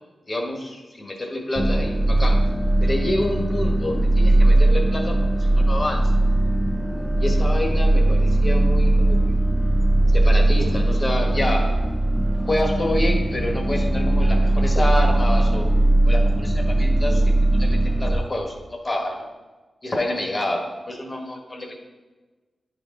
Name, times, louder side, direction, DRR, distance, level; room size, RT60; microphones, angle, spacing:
voice 1, 0.3-2.5 2.8-6.1 7.2-9.3 10.1-11.8 12.4-15.7 16.0-17.2 17.5-19.3 19.8-21.8, left 1 dB, 30° left, 2 dB, 1.3 m, -28 dB
sound 1, 1.6-18.2, right 1 dB, ahead, 0.6 m, -19 dB
9.8 x 4.0 x 3.7 m, 1.3 s
wide cardioid pair, 85°, 0 cm